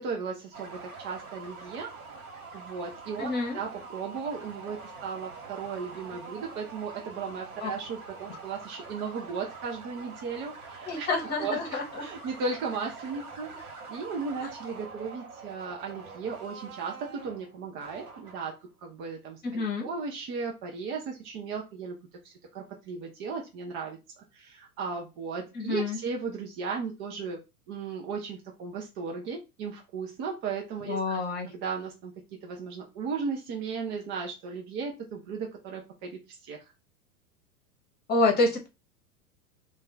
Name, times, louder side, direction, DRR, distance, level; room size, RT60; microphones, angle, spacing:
voice 1, 0.0-1.9 2.5-11.1 11.4-24.0 24.3-27.4 27.7-36.7, right 5 dB, 25° right, 1 dB, 0.4 m, -36 dB
sound 1, 0.5-18.7, right 4 dB, 65° right, 1.2 m, -45 dB
voice 2, 3.2-3.6 7.6-7.7 8.3-8.4 10.9-12.0 19.4-19.9 25.5-26.0 30.9-31.5 38.1-38.7, left 3 dB, 20° left, 3 dB, 1.0 m, -28 dB
2.5 x 2.2 x 3.8 m, 0.26 s
hypercardioid pair, 110°, 45 cm